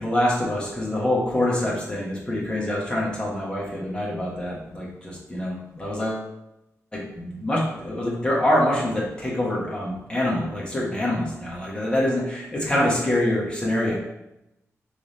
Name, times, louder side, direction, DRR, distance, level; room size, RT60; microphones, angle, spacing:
voice 1, 0.0-6.3 6.9-13.9, left 1 dB, 20° left, -5 dB, 1.3 m, -25 dB
3.5 x 3.5 x 4.1 m, 0.88 s
wide cardioid pair, 130°, 6 cm